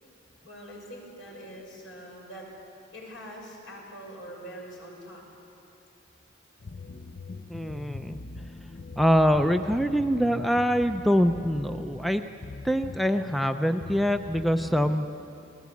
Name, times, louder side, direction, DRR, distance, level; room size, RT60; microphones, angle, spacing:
voice 1, 0.4-2.5 2.9-5.2 14.7-15.0, equal, 75° left, -1 dB, 6.2 m, -44 dB
sound 1, 6.6-14.9, left 3 dB, 45° left, 0.6 m, -41 dB
voice 2, 7.5-8.2 9.0-12.2 12.6-15.1, equal, ahead, 8 dB, 0.5 m, -24 dB
28.5 x 18.5 x 8.4 m, 2.8 s
head